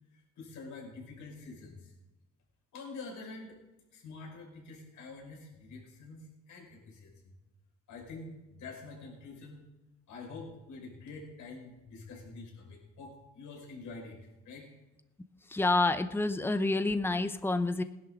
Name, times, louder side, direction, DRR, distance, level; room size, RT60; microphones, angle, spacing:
voice 1, 0.1-1.9 2.7-3.6 3.9-7.3 7.9-9.6 10.1-14.2 14.4-14.7, left 3 dB, 80° left, -2 dB, 5.4 m, -46 dB
voice 2, 15.5-17.8, left 2 dB, 5° left, 10 dB, 0.8 m, -28 dB
19.5 x 11.0 x 3.8 m, 1.0 s
cardioid pair, 90°, 30 cm